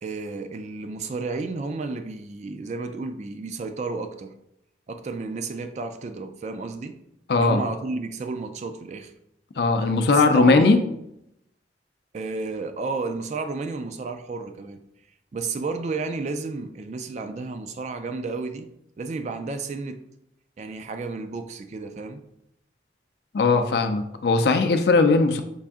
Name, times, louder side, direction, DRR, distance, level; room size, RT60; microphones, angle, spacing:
voice 1, 0.0-4.3 4.9-7.0 7.3-9.1 10.1-10.8 12.1-14.8 15.3-18.7 19.0-20.0 20.6-22.2, right 3 dB, 40° right, 0.3 m, -32 dB
voice 2, 7.3-7.6 9.6-10.8 23.3-25.4, left 3 dB, 65° left, 0.4 m, -19 dB
5.5 x 2.5 x 3.5 m
head